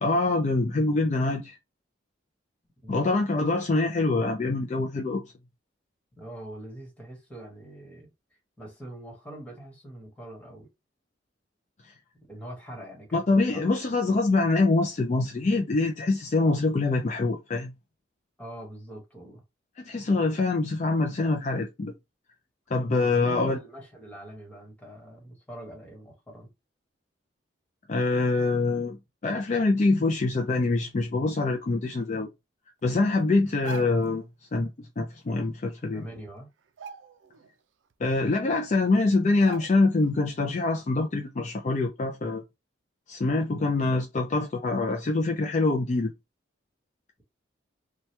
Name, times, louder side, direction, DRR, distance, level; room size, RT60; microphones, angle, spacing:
voice 1, 0.0-1.6 2.9-5.2 13.1-17.7 19.8-21.9 22.7-23.6 27.9-29.0 29.2-32.3 32.8-34.3 34.5-36.0 38.0-42.4 43.1-46.1, left 3 dB, 40° left, 0.4 m, -25 dB
voice 2, 6.2-8.1 8.6-10.7 12.1-13.6 18.4-19.4 23.0-26.5 35.9-36.5 43.5-43.6, right 1 dB, 5° left, 1.2 m, -43 dB
sound 1, 33.5-34.2 35.6-35.7 36.1-36.3 36.7-37.5 37.9-38.0 38.8-38.9 39.4-40.1 40.4-40.6, right 6 dB, 80° right, 0.4 m, -43 dB
2.8 x 2.2 x 3.2 m
head